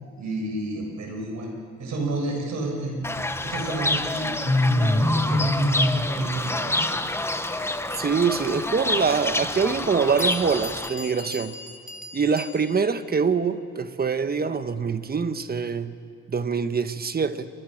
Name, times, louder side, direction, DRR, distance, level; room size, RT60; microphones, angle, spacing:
voice 1, 0.2-1.5 1.8-7.0, right 2 dB, 70° right, 1 dB, 7.3 m, -31 dB
Fowl / Bird, 3.0-10.9, left 2 dB, 10° left, 1.2 m, -25 dB
voice 2, 8.0-11.5 12.1-16.0 16.3-17.5, right 5 dB, 30° right, 10 dB, 1.3 m, -24 dB
Bell, 10.2-13.0, left 2 dB, 25° left, 2.5 m, -40 dB
29.5 x 25.5 x 6.6 m, 2.2 s
cardioid pair, 90°, 30 cm